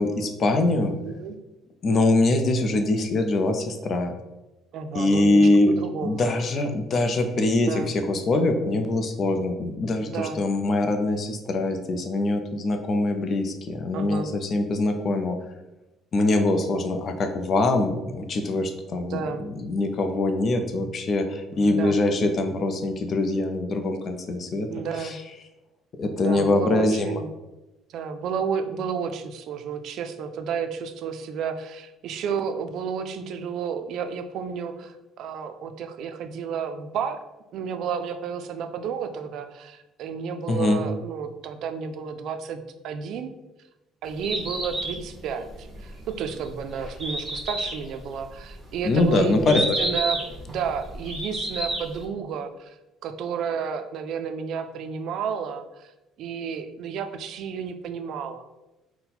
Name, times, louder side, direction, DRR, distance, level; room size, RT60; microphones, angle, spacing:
voice 1, 0.0-0.9 1.8-4.1 4.9-5.7 6.0-15.4 16.1-24.7 26.0-27.2 40.5-40.8 48.8-49.6, left 2 dB, 45° left, 6 dB, 0.5 m, -23 dB
voice 2, 1.0-1.4 4.7-6.3 7.6-7.9 10.0-10.4 13.9-14.3 19.1-19.5 21.5-22.0 24.7-25.2 26.1-27.3 27.9-37.2 37.5-43.3 44.0-50.2 50.5-52.8 53.0-55.9 56.2-58.5, right 6 dB, 65° right, 8 dB, 0.4 m, -31 dB
Bird, 44.0-52.0, right 1 dB, 25° right, 1.3 m, -31 dB
4.0 x 2.1 x 4.1 m, 1.0 s
cardioid pair, 120°, 0 cm